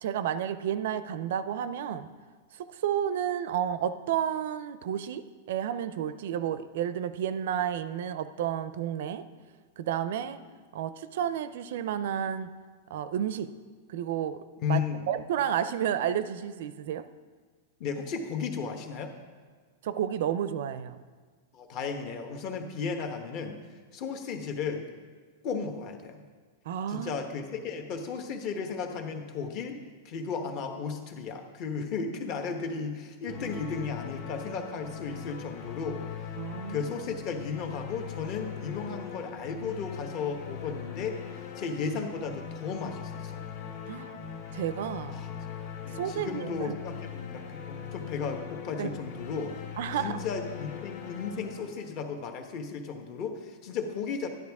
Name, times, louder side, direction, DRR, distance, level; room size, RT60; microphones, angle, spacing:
voice 1, 0.0-2.1 2.5-9.2 9.8-10.4 10.7-12.5 12.9-13.5 13.9-17.1 19.8-21.0 26.7-27.1 36.4-36.9 43.9-44.3 44.5-45.2 45.9-46.7 48.8-48.9 49.8-50.2, right 9 dB, 60° right, 13 dB, 0.5 m, -31 dB
voice 2, 14.6-15.1 17.8-19.1 21.5-23.6 23.9-24.9 25.4-26.2 26.9-29.8 30.0-36.0 36.7-41.2 41.6-43.4 45.1-45.3 45.8-49.5 50.0-54.3, left 5 dB, 35° left, 5 dB, 1.1 m, -34 dB
sound 1, 33.3-52.2, left 8 dB, 50° left, 2.0 m, -41 dB
11.5 x 10.5 x 3.6 m, 1.5 s
supercardioid pair, 165°, 0 cm